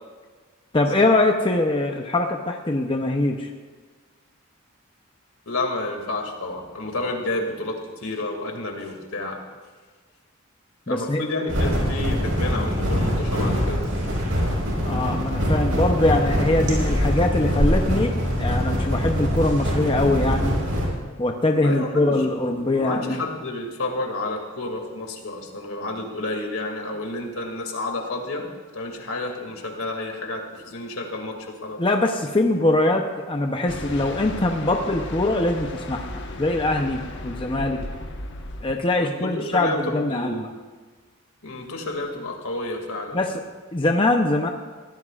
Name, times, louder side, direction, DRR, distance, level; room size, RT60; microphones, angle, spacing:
voice 1, 0.7-3.5 10.9-11.2 14.9-20.6 21.2-23.2 31.8-36.1 36.4-37.8 38.6-40.5 43.1-43.3 43.7-44.5, left 2 dB, 25° left, 3 dB, 0.7 m, -22 dB
voice 2, 5.5-9.4 10.9-13.8 21.6-28.5 28.7-31.8 39.0-40.4 41.4-43.3, left 2 dB, 75° left, 2 dB, 2.4 m, -30 dB
sound 1, 11.5-20.8, equal, 65° right, 5.2 m, -23 dB
sound 2, 33.7-38.7, left 1 dB, 55° left, 1.3 m, -35 dB
23.0 x 16.0 x 2.5 m, 1.4 s
head